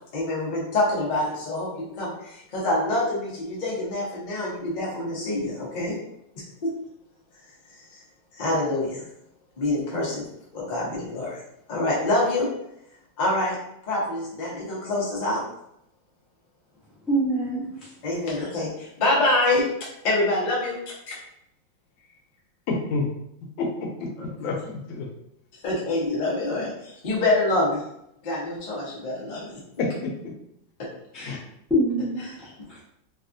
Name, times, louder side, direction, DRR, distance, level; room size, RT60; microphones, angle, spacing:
voice 1, 0.1-6.0 6.4-6.7 8.3-9.0 9.6-10.3 10.5-11.4 11.7-12.5 13.2-13.6 13.9-15.4 18.0-19.6 20.0-21.2 25.6-27.8 28.2-29.6 30.8-30.9 31.1-31.3, left 2 dB, 45° left, -5 dB, 0.6 m, -26 dB
voice 2, 17.1-17.9 31.1-31.3 31.7-32.8, right 1 dB, ahead, -8 dB, 0.5 m, -26 dB
voice 3, 22.7-23.0 23.6-25.1 29.8-30.1 31.2-31.4, left 3 dB, 80° left, 1 dB, 1.4 m, -28 dB
3.4 x 2.3 x 2.5 m, 0.78 s
omnidirectional pair, 2.1 m